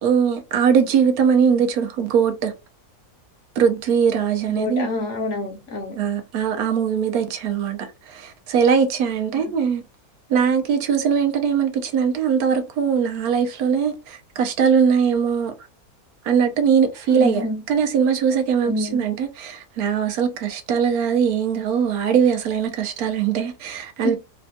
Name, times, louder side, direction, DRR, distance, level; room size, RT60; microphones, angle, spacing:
voice 1, 0.0-2.5 3.6-4.9 5.9-9.8 10.3-15.5 16.2-24.2, right 7 dB, 75° right, 1.1 m, -21 dB
voice 2, 4.5-6.0 9.3-9.5 17.1-17.6 18.6-19.0 24.0-24.2, left 2 dB, 55° left, 1.0 m, -27 dB
3.3 x 2.2 x 2.6 m
omnidirectional pair, 1.6 m